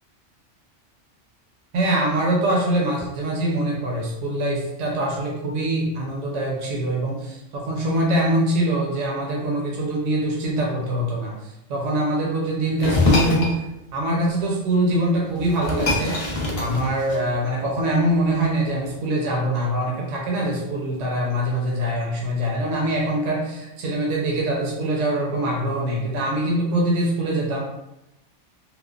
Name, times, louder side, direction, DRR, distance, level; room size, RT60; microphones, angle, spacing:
voice 1, 1.7-13.6 13.9-27.6, right 1 dB, 80° right, -2 dB, 0.9 m, -24 dB
sound 1, 12.8-13.6 15.0-15.1 15.4-17.4, left 2 dB, 50° left, 0.4 m, -23 dB
3.1 x 2.1 x 2.3 m, 0.90 s
omnidirectional pair, 1.2 m